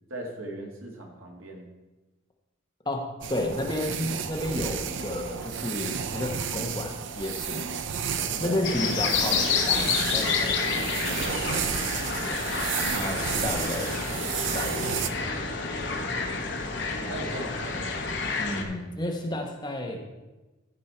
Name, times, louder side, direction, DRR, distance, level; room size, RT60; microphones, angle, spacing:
voice 1, 0.1-1.7 8.2-8.6 16.9-18.0, right 1 dB, 80° right, 0 dB, 2.0 m, -38 dB
voice 2, 2.8-7.7 8.4-12.6 12.9-15.2 18.4-20.1, left 1 dB, 20° left, 1 dB, 1.1 m, -32 dB
sound 1, 3.2-15.1, right 7 dB, 65° right, 0.5 m, -32 dB
sound 2, 8.6-18.6, left 4 dB, 55° left, 1.1 m, -29 dB
14.0 x 5.4 x 4.4 m, 1.1 s
head